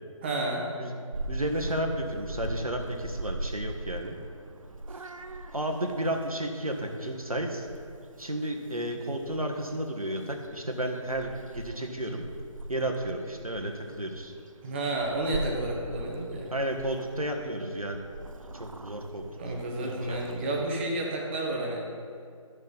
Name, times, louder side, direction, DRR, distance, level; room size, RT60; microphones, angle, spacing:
voice 1, 0.2-0.7 14.6-16.5 19.4-21.9, right 2 dB, 20° right, -1 dB, 1.3 m, -31 dB
Purr / Meow, 1.1-20.6, right 1 dB, 70° right, 0.8 m, -41 dB
voice 2, 1.3-4.2 5.5-7.7 8.2-12.3 12.7-14.3 16.5-18.1 18.5-19.2 19.8-20.2, right 1 dB, 85° right, 3 dB, 1.6 m, -32 dB
13.0 x 6.4 x 5.5 m, 2.3 s
figure-of-eight pair, 150°, 18 cm